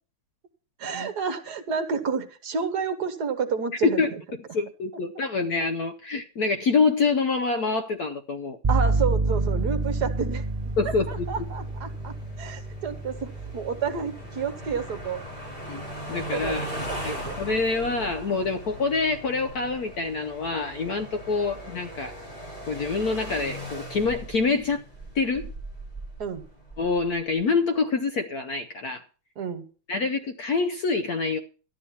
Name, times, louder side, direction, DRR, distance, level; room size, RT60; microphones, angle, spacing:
voice 1, 0.8-4.0 8.7-10.4 10.8-15.2 16.3-17.5 26.2-26.4 29.4-29.6, right 6 dB, 55° right, 1.5 m, -30 dB
voice 2, 3.8-8.6 10.8-11.4 15.7-15.8 16.1-16.7 17.0-22.1 22.7-24.8 25.1-25.5 26.8-29.0 29.9-31.4, left 4 dB, 60° left, 1.0 m, -26 dB
sound 1, 8.6-16.4, right 3 dB, 20° right, 1.3 m, -29 dB
sound 2, 9.3-27.4, right 1 dB, 25° left, 5.2 m, -39 dB
12.5 x 9.7 x 5.7 m
omnidirectional pair, 2.2 m